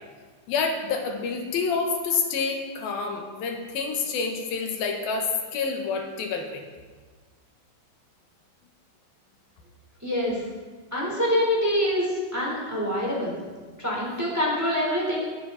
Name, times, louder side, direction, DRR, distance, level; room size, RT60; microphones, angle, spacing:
voice 1, 0.5-6.6, left 5 dB, 85° left, 3 dB, 3.4 m, -28 dB
voice 2, 10.0-10.4 10.9-13.3 13.8-15.3, left 1 dB, 5° right, -4 dB, 3.7 m, -25 dB
19.5 x 11.0 x 4.2 m, 1.5 s
omnidirectional pair, 4.1 m